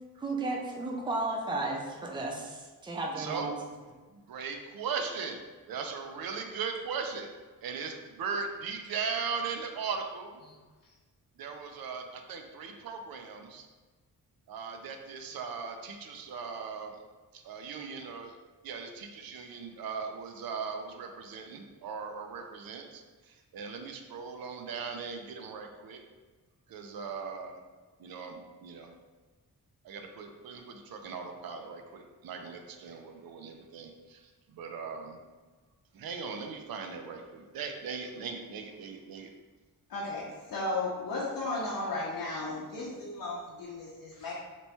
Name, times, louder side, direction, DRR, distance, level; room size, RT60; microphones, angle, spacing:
voice 1, 0.2-3.6, right 2 dB, 15° right, 0 dB, 0.4 m, -34 dB
voice 2, 3.2-3.5 4.1-5.4 5.7-7.3 7.6-10.4 11.4-13.7 14.5-16.9 17.3-18.3 18.6-23.0 23.5-26.0 26.7-27.5 28.0-28.9 29.8-34.2 34.5-35.2 35.9-39.3 42.3-42.4, right 5 dB, 85° right, 5 dB, 0.5 m, -38 dB
voice 3, 39.9-44.3, left 2 dB, 80° left, -6 dB, 0.7 m, -35 dB
3.0 x 2.2 x 4.1 m, 1.3 s
wide cardioid pair, 160°, 35 cm